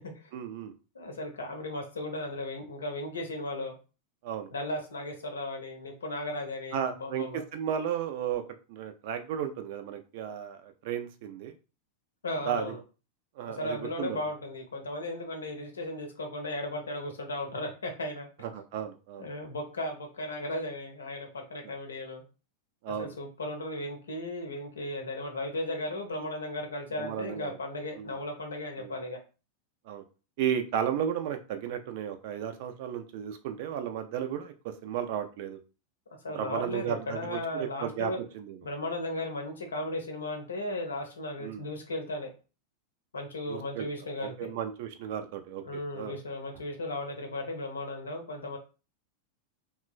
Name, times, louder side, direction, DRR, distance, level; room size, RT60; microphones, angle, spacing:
voice 1, 0.3-0.7 4.2-4.5 6.7-8.4 8.7-11.5 12.5-12.7 13.4-14.3 18.4-19.3 22.8-23.1 27.0-27.6 28.0-28.2 28.8-28.9 29.9-30.0 30.4-35.6 36.3-38.6 41.4-41.6 43.5-43.9 44.2-46.2, right 9 dB, 50° right, 8 dB, 0.4 m, -34 dB
voice 2, 0.9-3.7 4.5-7.4 12.2-12.8 13.5-18.3 19.2-22.2 23.0-29.2 36.2-38.2 38.6-42.3 43.1-44.5 45.6-48.6, left 1 dB, 70° left, 3 dB, 0.7 m, -36 dB
2.9 x 2.2 x 2.4 m, 0.33 s
figure-of-eight pair, 90°, 0 cm